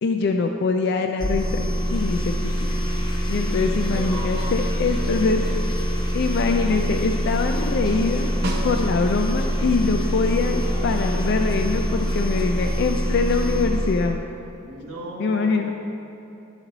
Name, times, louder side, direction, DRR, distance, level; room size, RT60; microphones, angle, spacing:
voice 1, 0.0-2.5 3.3-5.4 6.1-8.3 8.6-14.2 15.2-15.7, left 4 dB, 50° left, 4 dB, 0.3 m, -23 dB
sound 1, 1.2-14.2, equal, 20° left, 0.7 m, -24 dB
voice 2, 3.7-5.7 14.6-15.7, right 1 dB, 85° right, -2 dB, 1.3 m, -36 dB
sound 2, 7.4-12.8, equal, 85° left, 1.6 m, -42 dB
Snare drum, 8.4-9.3 13.8-13.9, right 1 dB, 50° right, 0.7 m, -31 dB
11.5 x 4.1 x 4.0 m, 2.9 s
head